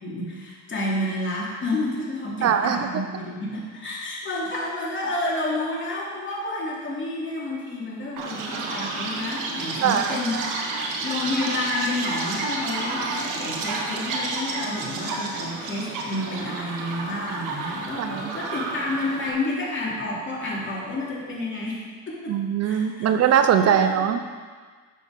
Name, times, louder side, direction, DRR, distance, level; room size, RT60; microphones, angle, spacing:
voice 1, 0.0-10.4 11.0-22.3 22.6-23.3 23.6-24.1, left 2 dB, 40° left, -5 dB, 2.9 m, -30 dB
voice 2, 2.4-2.9 9.8-10.4 18.0-18.3 22.3-24.2, right 8 dB, 50° right, 8 dB, 0.6 m, -21 dB
Chirp tweet, 8.2-19.3, right 3 dB, 75° right, 1.4 m, -30 dB
7.6 x 7.0 x 5.3 m, 1.5 s
cardioid pair, 90°, 32 cm